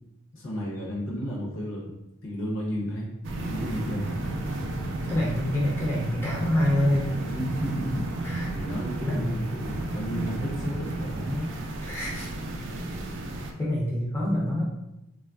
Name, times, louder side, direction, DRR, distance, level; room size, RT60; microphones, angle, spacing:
voice 1, 0.3-1.9 2.2-3.1 3.5-4.3 7.2-11.5, equal, 60° left, -3 dB, 0.7 m, -33 dB
sound 1, 3.2-13.5, right 2 dB, 55° right, 0.3 m, -33 dB
voice 2, 5.1-7.1 8.2-8.5 9.0-9.4 11.8-12.3 13.6-14.6, left 1 dB, 10° left, -6 dB, 0.4 m, -26 dB
3.0 x 2.4 x 2.3 m, 0.89 s
head